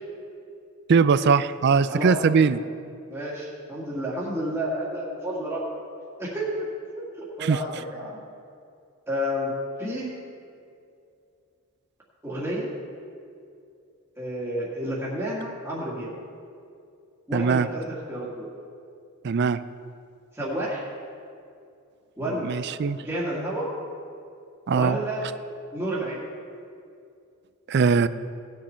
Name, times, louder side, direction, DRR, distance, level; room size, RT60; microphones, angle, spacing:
voice 1, 0.9-2.6 7.4-7.6 17.3-17.7 19.2-19.6 22.4-23.0 24.7-25.0 27.7-28.1, right 5 dB, 50° right, 14 dB, 0.4 m, -20 dB
voice 2, 1.8-2.2 3.1-5.6 6.2-6.7 7.0-7.1 7.4-8.2 9.1-9.5 9.8-10.1 12.2-12.7 14.2-16.1 17.3-18.5 20.3-20.9 22.2-22.6 23.0-23.7 24.7-25.3 25.7-26.2, equal, 10° right, -8 dB, 1.9 m, -30 dB
18.0 x 7.2 x 4.4 m, 2.5 s
head